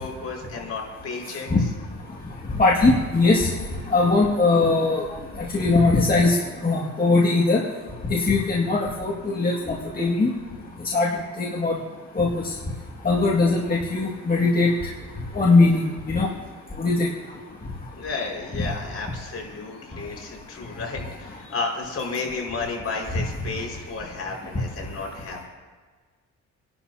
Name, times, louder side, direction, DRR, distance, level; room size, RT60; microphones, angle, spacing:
voice 1, 0.0-1.5 18.0-25.4, left 3 dB, 50° left, 0 dB, 5.0 m, -32 dB
voice 2, 2.6-3.5 3.9-5.0 5.5-6.4 6.6-7.6 8.1-10.3 10.9-11.1 11.4-11.8 12.2-12.3 13.0-14.7 15.3-16.3 16.8-17.1, left 3 dB, 30° left, -4 dB, 2.0 m, -20 dB
29.5 x 11.5 x 2.8 m, 1.4 s
cardioid pair, 90°, 30 cm